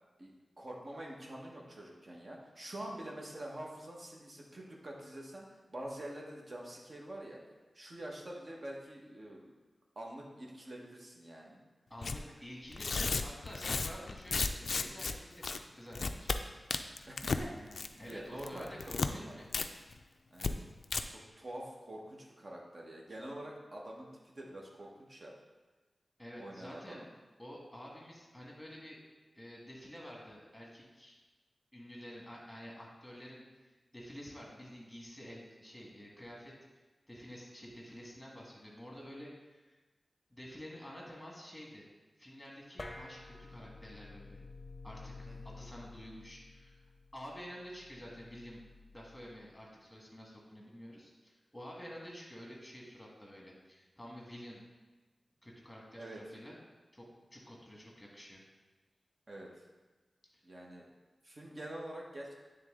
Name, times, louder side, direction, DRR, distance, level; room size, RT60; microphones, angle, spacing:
voice 1, 0.2-7.4 7.7-9.5 9.9-11.6 17.1-18.7 19.0-19.4 20.3-20.5 21.1-25.3 26.4-27.1 45.3-45.4 56.0-56.2 59.3-59.5 60.4-60.9 61.2-62.3, right 1 dB, 45° right, -2 dB, 1.2 m, -46 dB
voice 2, 11.9-15.4 15.7-16.3 18.0-19.5 26.2-27.0 27.4-29.0 29.3-31.1 31.7-36.5 37.1-39.7 40.3-41.9 42.2-44.4 44.8-46.8 47.1-54.6 55.4-56.6 56.9-58.4, equal, 5° left, -3 dB, 1.6 m, -50 dB
Tearing, 12.0-12.2 12.7-15.1 15.4-15.6 15.9-16.4 16.7-17.4 17.7-18.1 18.4-19.1 19.5-19.7 19.9-20.0 20.4-20.5 20.8-21.0, left 4 dB, 70° left, 0.3 m, -33 dB
barbecue lid, 42.8-49.5, left 3 dB, 35° left, 0.6 m, -51 dB
8.9 x 3.4 x 3.7 m, 1.2 s
wide cardioid pair, 105°, 0 cm